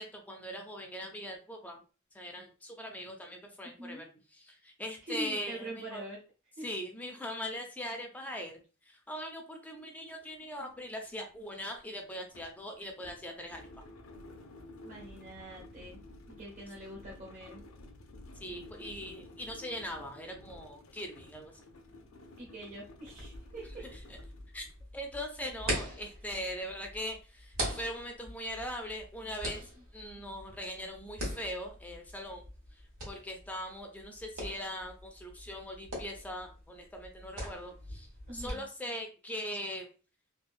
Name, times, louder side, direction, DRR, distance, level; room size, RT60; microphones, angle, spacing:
voice 1, 0.0-1.8 2.1-6.0 6.6-8.6 8.9-13.7 18.3-21.6 23.9-24.2 24.5-24.7 24.9-32.5 32.7-32.8 33.1-39.9, equal, 5° left, 3 dB, 0.4 m, -41 dB
voice 2, 5.1-6.2 6.6-6.7 14.8-16.0 16.3-17.6 22.4-23.8 38.3-38.6, right 1 dB, 35° right, -3 dB, 0.7 m, -44 dB
sound 1, 9.7-9.8 10.1-24.8, left 2 dB, 70° left, 0.5 m, -53 dB
sound 2, 23.0-38.5, equal, 90° right, 1.4 m, -42 dB
3.5 x 2.4 x 2.4 m, 0.35 s
head